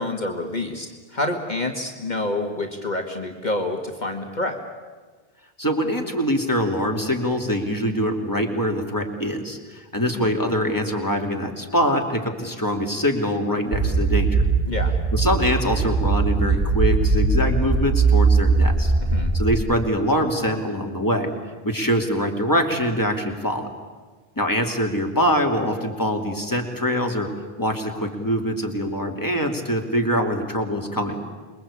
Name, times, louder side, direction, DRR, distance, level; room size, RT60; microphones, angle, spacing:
voice 1, 0.0-4.6 10.1-10.3 14.7-14.9 19.1-19.3, left 2 dB, 45° left, 3 dB, 1.9 m, -28 dB
voice 2, 5.6-14.4 15.1-18.9 19.3-21.3 21.6-23.7 24.4-27.3 27.6-31.2, equal, 20° left, 2 dB, 2.9 m, -24 dB
sound 1, 13.7-19.6, right 4 dB, 45° right, 2.6 m, -20 dB
27.5 x 22.5 x 8.6 m, 1.4 s
omnidirectional pair, 1.0 m